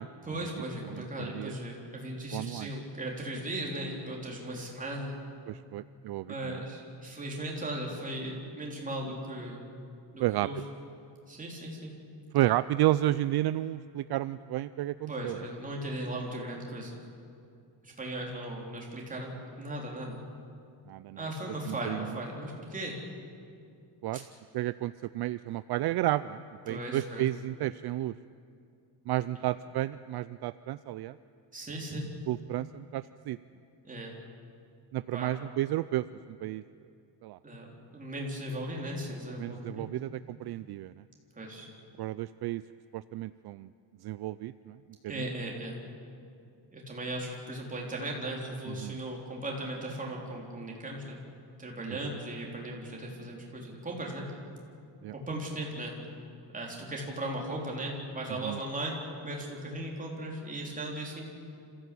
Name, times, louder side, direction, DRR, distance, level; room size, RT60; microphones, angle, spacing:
voice 1, 0.2-5.2 6.3-9.6 10.1-10.6 11.3-11.9 15.1-17.0 17.8-20.2 21.2-22.9 24.1-24.2 26.7-27.3 31.5-32.1 33.8-34.1 35.1-35.3 37.4-37.7 37.9-39.9 41.3-41.7 45.1-45.8 46.7-51.2 51.6-54.3 55.1-55.9 56.5-59.0 59.2-61.2, right 1 dB, 20° right, -1 dB, 3.7 m, -37 dB
voice 2, 0.9-1.5 2.3-2.7 5.5-6.6 10.2-10.5 12.3-15.4 20.9-21.2 21.7-22.2 24.0-24.2 24.5-28.1 29.1-31.2 32.3-33.4 34.9-36.6 37.2-37.4 39.4-41.0 42.0-42.6 42.9-43.7 44.0-44.8 45.0-45.2 48.7-49.0 51.9-52.0 55.0-55.1 58.4-58.6, right 15 dB, 65° right, 15 dB, 0.5 m, -32 dB
27.5 x 15.5 x 8.5 m, 2.4 s
cardioid pair, 170°, 42 cm